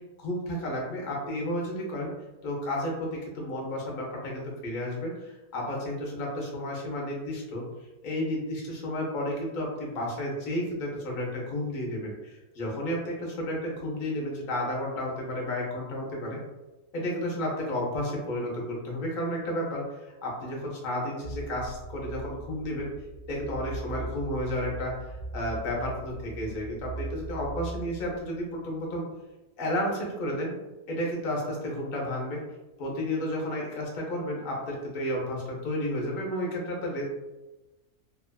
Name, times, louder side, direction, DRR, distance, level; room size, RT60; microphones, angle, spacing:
voice 1, 0.2-2.1 2.4-7.7 8.0-16.4 16.9-22.9 23.3-29.0 29.6-30.5 30.9-32.4 32.8-37.0, left 1 dB, 55° left, -2 dB, 0.6 m, -32 dB
sound 1, 21.2-28.7, right 2 dB, 50° right, 0.8 m, -40 dB
2.7 x 2.4 x 2.2 m, 1.1 s
omnidirectional pair, 1.7 m